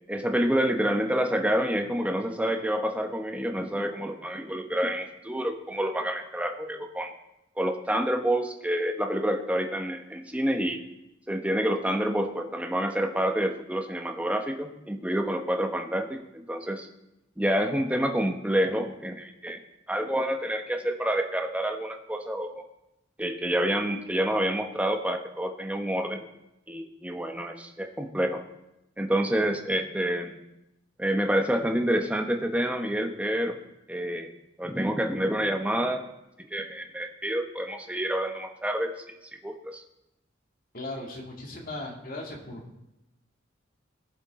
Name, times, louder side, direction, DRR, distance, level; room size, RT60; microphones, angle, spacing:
voice 1, 0.1-7.1 7.6-10.8 11.3-16.9 17.4-19.6 19.9-22.6 23.2-26.2 26.7-28.4 29.0-30.4 31.0-33.6 33.9-34.3 34.6-36.0 36.5-38.9 39.4-39.8, right 1 dB, 5° right, 4 dB, 0.9 m, -28 dB
voice 2, 40.7-42.6, left 2 dB, 50° left, -1 dB, 2.4 m, -37 dB
19.5 x 7.2 x 3.7 m, 0.90 s
head